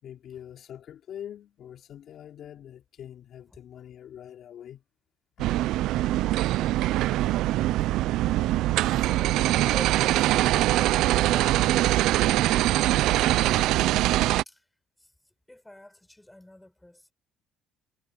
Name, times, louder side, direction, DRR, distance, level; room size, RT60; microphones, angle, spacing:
voice 1, 0.0-4.8 5.4-5.5, left 10 dB, 50° left, 3.4 m, -44 dB
sound 1, 5.4-14.4, right 15 dB, 70° right, 0.5 m, -23 dB
voice 2, 6.9-7.2 7.9-8.1 8.7-10.3 11.1-14.1 14.4-14.6 15.0-15.1 15.5-17.1, left 1 dB, 5° left, 6.7 m, -49 dB
cardioid pair, 145°, 0 cm